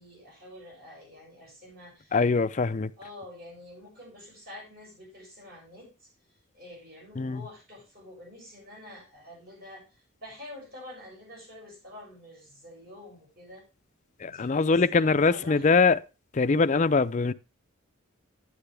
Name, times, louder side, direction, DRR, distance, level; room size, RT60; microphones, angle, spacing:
voice 1, 0.0-2.5 3.0-6.1 6.5-13.7 14.2-15.8, left 1 dB, 45° right, 6.5 m, -48 dB
voice 2, 2.1-2.9 7.2-7.4 14.2-16.0 16.3-17.3, left 4 dB, 35° left, 0.4 m, -23 dB
10.0 x 9.6 x 3.4 m
head